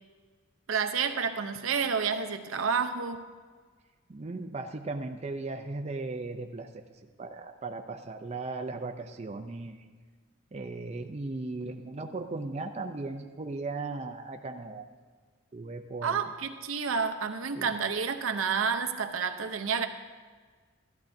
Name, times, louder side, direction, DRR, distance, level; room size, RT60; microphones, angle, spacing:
voice 1, 0.7-3.2 16.0-19.9, right 6 dB, 75° right, 8 dB, 0.7 m, -29 dB
voice 2, 4.1-9.9 10.5-14.8 15.5-16.2 17.5-17.7, right 3 dB, 30° right, 4 dB, 0.5 m, -37 dB
13.5 x 11.5 x 2.6 m, 1.5 s
head